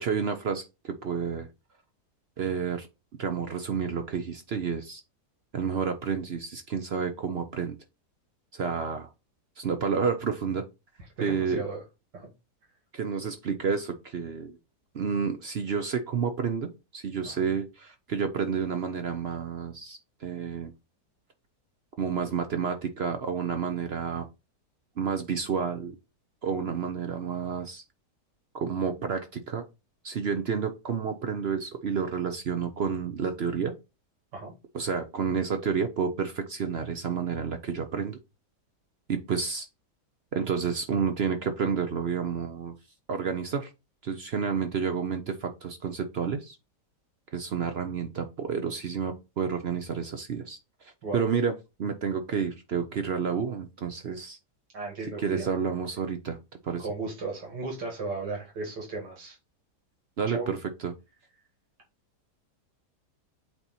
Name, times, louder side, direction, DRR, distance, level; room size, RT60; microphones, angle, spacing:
voice 1, 0.0-1.5 2.4-2.9 3.2-5.0 5.5-7.8 8.5-9.1 9.6-10.6 11.2-11.6 12.9-14.6 14.9-20.7 22.0-24.3 25.0-25.9 26.4-27.8 28.5-29.6 30.0-33.7 34.7-38.2 39.1-39.7 40.3-42.8 43.1-43.7 44.0-46.6 47.3-50.6 50.8-54.4 55.2-56.4 56.6-56.9 60.2-60.6 60.8-60.9, right 6 dB, 55° right, 0.7 m, -30 dB
voice 2, 11.2-11.8 12.1-12.3 17.3-17.4 34.3-34.5 51.0-51.2 54.7-55.5 56.8-59.4 60.3-60.5, right 3 dB, 85° right, 2.5 m, -35 dB
8.0 x 2.9 x 4.1 m
omnidirectional pair, 1.8 m